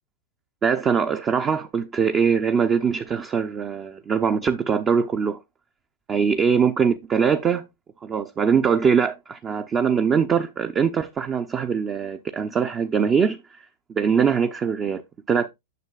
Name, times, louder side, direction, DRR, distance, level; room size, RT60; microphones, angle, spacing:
voice 1, 0.6-5.4 6.1-7.7 8.0-13.4 13.9-15.5, right 6 dB, 25° right, 0.6 m, -22 dB
9.3 x 6.6 x 2.3 m
hypercardioid pair, 115°, 0 cm